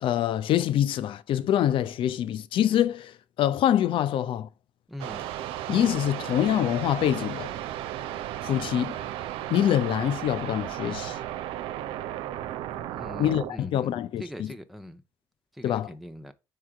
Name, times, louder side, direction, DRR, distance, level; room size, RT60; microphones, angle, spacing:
voice 1, 0.0-3.1 3.4-4.5 5.7-7.5 8.4-8.9 9.5-11.2 13.2-14.5 15.6-15.9, left 11 dB, 60° left, 0.6 m, -25 dB
voice 2, 4.9-5.2 12.9-15.0 15.5-16.3, equal, ahead, 0.8 m, -42 dB
sound 1, 5.0-13.5, right 12 dB, 70° right, 0.5 m, -35 dB
4.9 x 4.7 x 4.5 m
hypercardioid pair, 45°, 10 cm